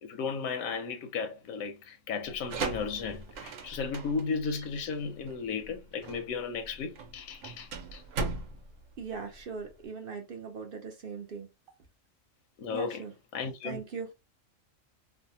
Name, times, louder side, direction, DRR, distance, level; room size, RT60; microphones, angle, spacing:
voice 1, 0.0-8.0 12.6-13.0 13.3-13.8, left 5 dB, 85° left, 1.0 m, -35 dB
sound 1, 2.2-9.8, right 3 dB, 80° right, 1.0 m, -39 dB
voice 2, 9.0-11.5 12.7-13.1 13.6-14.1, right 5 dB, 60° right, 0.6 m, -39 dB
2.6 x 2.1 x 2.7 m
omnidirectional pair, 1.4 m